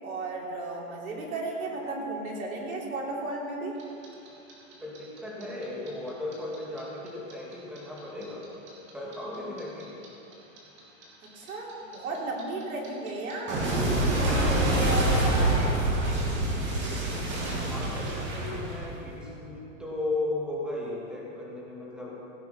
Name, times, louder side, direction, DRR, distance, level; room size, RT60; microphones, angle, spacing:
voice 1, 0.0-3.7 11.3-15.8, right 2 dB, 90° right, -2 dB, 3.7 m, -34 dB
Clock, 3.8-6.8 7.1-10.1 10.3-19.2, right 1 dB, 25° right, 2.8 m, -27 dB
voice 2, 4.8-8.5 8.9-10.0 17.6-22.2, left 2 dB, ahead, -5 dB, 2.3 m, -36 dB
16.5 x 9.0 x 5.9 m, 3.0 s
hypercardioid pair, 145°, 41 cm